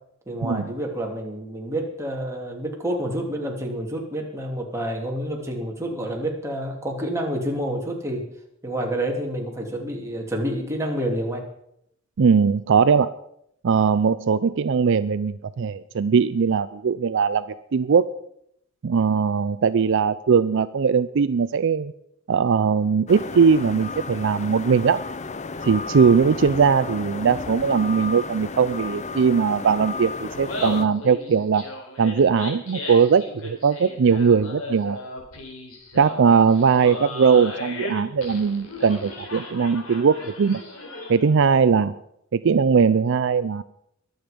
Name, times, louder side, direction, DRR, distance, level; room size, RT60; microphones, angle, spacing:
voice 1, 0.3-8.2 8.6-11.4, right 1 dB, 15° right, 0 dB, 2.8 m, -28 dB
voice 2, 12.2-13.1 13.6-17.5 17.7-18.1 18.8-21.9 22.3-25.0 25.6-31.6 32.0-35.0 36.0-40.6 41.1-42.0 42.3-43.6, right 6 dB, 65° right, 14 dB, 0.4 m, -20 dB
sound 1, 23.1-30.9, left 4 dB, 35° left, 0.7 m, -33 dB
Laughter, 30.3-41.4, left 2 dB, 85° left, 3.8 m, -36 dB
22.5 x 7.9 x 5.2 m, 0.75 s
head